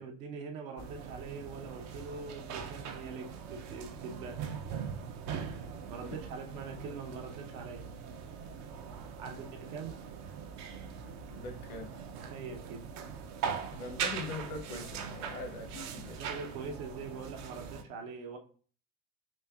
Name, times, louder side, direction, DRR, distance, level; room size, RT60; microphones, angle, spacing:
voice 1, 0.0-4.5 5.9-7.9 9.2-10.0 12.2-12.9 16.2-18.4, right 5 dB, 65° right, 0.8 m, -43 dB
sound 1, 0.8-17.8, right 6 dB, 40° right, 0.5 m, -41 dB
voice 2, 11.3-11.9 13.7-16.2, left 2 dB, 70° left, 0.9 m, -42 dB
4.3 x 2.5 x 2.3 m
hypercardioid pair, 75°, 45 cm